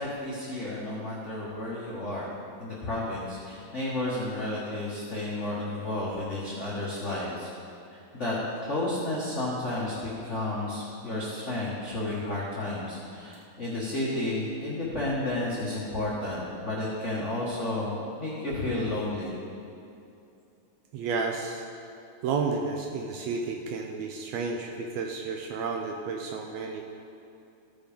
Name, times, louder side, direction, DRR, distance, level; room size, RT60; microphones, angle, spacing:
voice 1, 0.0-7.5 7.9-8.3 8.6-19.3, left 1 dB, 65° left, -7 dB, 0.7 m, -32 dB
voice 2, 20.9-21.7 22.2-26.8, right 4 dB, 85° right, 2 dB, 1.5 m, -31 dB
15.5 x 5.2 x 5.1 m, 2.6 s
omnidirectional pair, 3.8 m